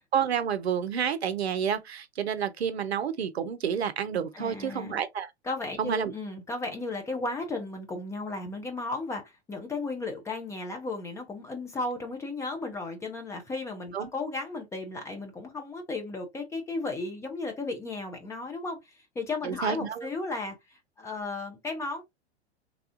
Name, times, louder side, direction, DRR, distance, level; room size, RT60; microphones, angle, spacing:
voice 1, 0.1-5.3 5.8-6.1 13.9-14.1 19.4-20.1, right 8 dB, 70° right, 0.6 m, -29 dB
voice 2, 4.3-5.0 5.4-9.2 9.5-20.6 21.0-22.0, left 3 dB, 10° left, 0.5 m, -34 dB
3.3 x 2.4 x 2.4 m
figure-of-eight pair, 100°, 33 cm